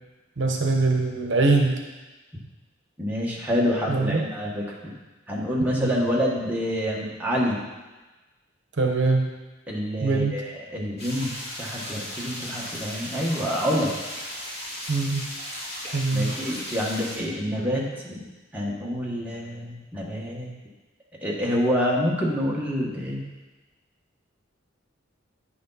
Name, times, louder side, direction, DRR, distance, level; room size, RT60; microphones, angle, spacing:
voice 1, 0.4-1.8 3.9-4.2 5.7-5.9 8.8-9.3 10.0-10.4 14.9-15.3 15.9-16.3, right 3 dB, 65° right, 2 dB, 1.0 m, -23 dB
voice 2, 3.0-4.9 5.3-7.6 9.7-11.3 11.6-14.0 16.1-18.2 18.5-20.5 21.2-23.2, equal, 10° right, -5 dB, 1.4 m, -27 dB
sound 1, 11.0-17.2, equal, 30° left, 2.9 m, -36 dB
9.5 x 6.6 x 4.0 m, 1.2 s
head